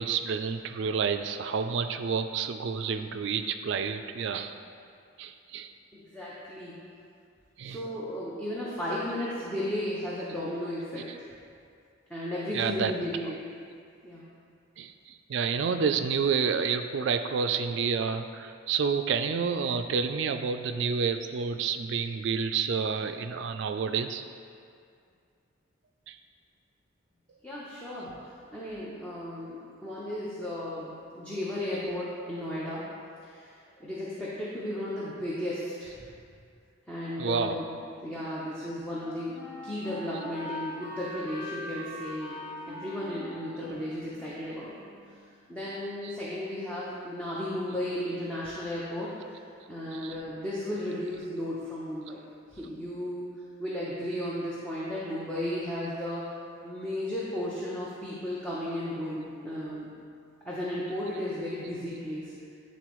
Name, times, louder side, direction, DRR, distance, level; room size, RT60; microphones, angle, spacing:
voice 1, 0.0-4.6 5.2-5.7 7.6-7.8 12.5-12.9 14.8-24.2 26.1-26.2 37.2-37.6 46.0-46.1 49.9-50.2, right 6 dB, 60° right, 8 dB, 0.3 m, -29 dB
voice 2, 5.9-6.8 7.6-11.3 12.1-13.5 14.0-14.3 27.4-32.8 33.2-36.1 36.9-37.6 38.0-39.4 39.6-44.8 45.5-49.4 49.7-52.2 52.5-53.2 53.6-56.3 56.6-59.9 60.5-62.3, left 1 dB, 5° left, -9 dB, 0.7 m, -34 dB
Wind instrument woodwind instrument, 38.9-45.2, left 1 dB, 25° left, 1.4 m, -42 dB
9.8 x 4.1 x 3.1 m, 2.3 s
head